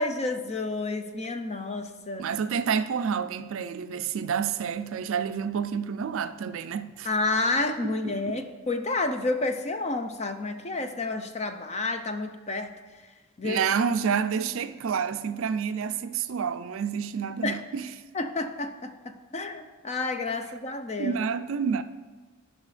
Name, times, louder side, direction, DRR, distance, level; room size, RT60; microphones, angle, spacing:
voice 1, 0.0-2.3 7.0-12.7 13.4-13.6 17.4-17.6 18.1-21.2, left 3 dB, 30° left, 0.6 m, -30 dB
voice 2, 2.2-7.1 7.8-8.4 13.4-17.9 21.0-21.8, right 6 dB, 60° right, 0.4 m, -29 dB
14.5 x 5.3 x 3.3 m
head